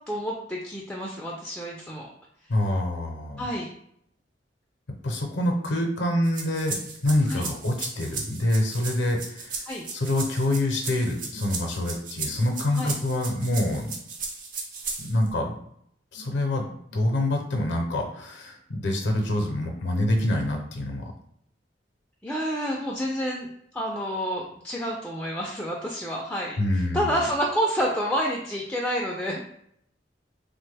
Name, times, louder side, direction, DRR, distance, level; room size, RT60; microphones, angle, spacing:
voice 1, 0.1-2.1 3.4-3.7 7.3-7.5 9.7-9.8 12.7-13.0 22.2-23.5 23.7-29.4, equal, 5° left, -2 dB, 0.3 m, -29 dB
voice 2, 2.5-3.5 5.0-6.8 7.0-9.5 9.9-13.9 15.0-15.6 16.1-16.6 16.9-21.1 26.6-27.2, left 1 dB, 75° left, 3 dB, 0.6 m, -26 dB
sound 1, 6.2-15.3, right 4 dB, 50° right, 0.5 m, -36 dB
2.9 x 2.1 x 3.2 m, 0.71 s
head